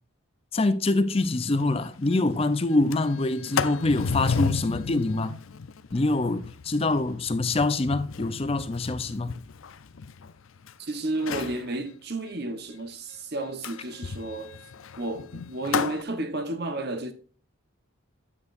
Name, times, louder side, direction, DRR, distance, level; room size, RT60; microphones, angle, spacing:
voice 1, 0.5-5.3 5.9-9.4, left 2 dB, 30° left, 0.5 m, -25 dB
Sliding door, 1.2-1.3 1.6-1.7 2.0-2.3 2.7-10.7 11.1-11.6 13.6-16.0, left 5 dB, 75° left, 0.6 m, -33 dB
voice 2, 10.8-14.6 15.0-17.1, right 2 dB, 50° right, 1.1 m, -32 dB
9.7 x 8.6 x 2.6 m
head